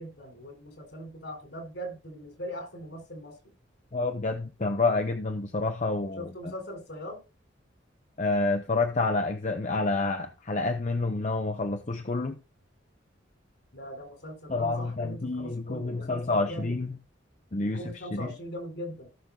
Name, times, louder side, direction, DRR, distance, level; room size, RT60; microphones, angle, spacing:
voice 1, 0.0-3.5 6.2-7.2 13.7-16.8 17.7-19.1, equal, 65° left, 3.8 m, -40 dB
voice 2, 3.9-6.5 8.2-12.4 14.5-17.0 17.5-18.3, left 3 dB, 40° left, 0.8 m, -28 dB
17.5 x 6.2 x 2.4 m
head